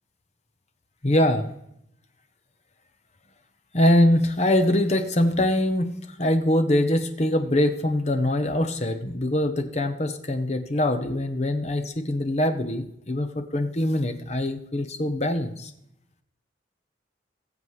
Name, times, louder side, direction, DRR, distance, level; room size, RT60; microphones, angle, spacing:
voice 1, 1.0-1.4 3.7-15.7, left 1 dB, 35° left, 7 dB, 0.9 m, -23 dB
20.5 x 7.4 x 3.2 m, 0.78 s
head